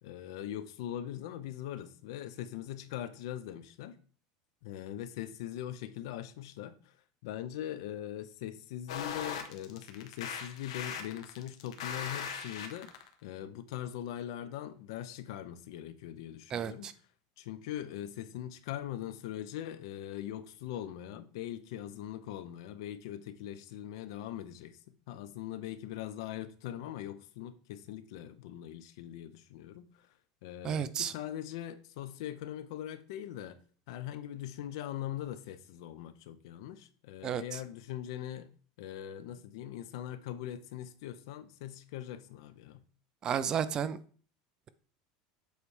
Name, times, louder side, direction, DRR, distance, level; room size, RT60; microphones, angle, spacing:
voice 1, 0.0-4.0 4.6-7.0 7.2-12.9 13.2-16.9 17.4-30.1 30.4-33.6 33.9-38.5 38.8-42.8, left 11 dB, 70° left, 0.7 m, -41 dB
sound 1, 8.9-13.1, left 7 dB, 90° left, 1.1 m, -39 dB
voice 2, 16.5-16.9 30.6-31.1 37.2-37.4 43.2-44.0, right 8 dB, 25° right, 0.4 m, -32 dB
8.0 x 3.2 x 4.9 m
supercardioid pair, 160°, 3 cm